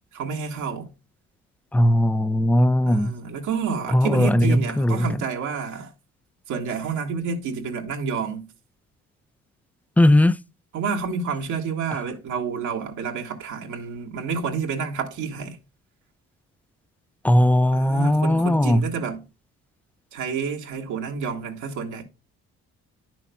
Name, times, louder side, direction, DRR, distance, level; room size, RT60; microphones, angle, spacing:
voice 1, 0.1-0.9 2.8-5.9 6.5-8.5 10.7-15.6 17.7-19.2 20.1-22.0, right 5 dB, 80° right, 1.6 m, -29 dB
voice 2, 1.7-3.2 3.9-5.1 10.0-10.4 17.2-18.9, left 1 dB, 5° left, 0.3 m, -18 dB
10.0 x 6.1 x 2.3 m
cardioid pair, 90°, 30 cm